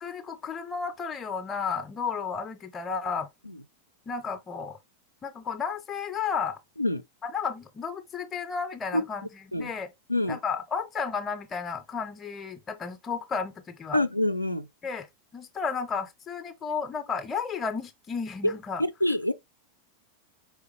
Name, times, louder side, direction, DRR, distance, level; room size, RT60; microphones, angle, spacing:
voice 1, 0.0-3.3 4.1-4.8 5.2-6.6 7.2-9.9 10.3-14.0 14.8-15.1 15.3-18.8, left 6 dB, 20° left, 0.6 m, -33 dB
voice 2, 13.9-14.7 18.4-18.5 19.0-19.3, left 1 dB, 85° left, 0.4 m, -25 dB
4.9 x 3.5 x 3.0 m
figure-of-eight pair, 90°, 0 cm